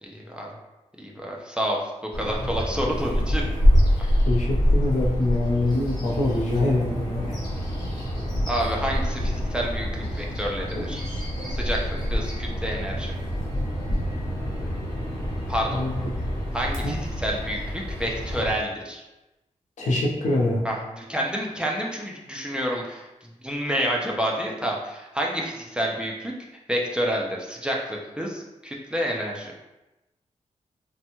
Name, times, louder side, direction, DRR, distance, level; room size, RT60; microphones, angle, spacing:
voice 1, 0.0-0.5 1.0-3.4 4.0-4.1 8.5-11.0 11.5-13.1 15.5-15.8 16.5-19.0 20.6-23.1 23.4-26.3 26.7-29.5, equal, 5° right, -2 dB, 0.4 m, -29 dB
Bird vocalization bird call bird song, 2.1-18.5, equal, 30° left, 1.0 m, -26 dB
voice 2, 4.2-7.4 15.7-15.9 16.8-16.9 19.8-20.6, left 2 dB, 75° left, -2 dB, 0.6 m, -24 dB
3.2 x 2.2 x 2.9 m, 1.0 s
wide cardioid pair, 130°, 13 cm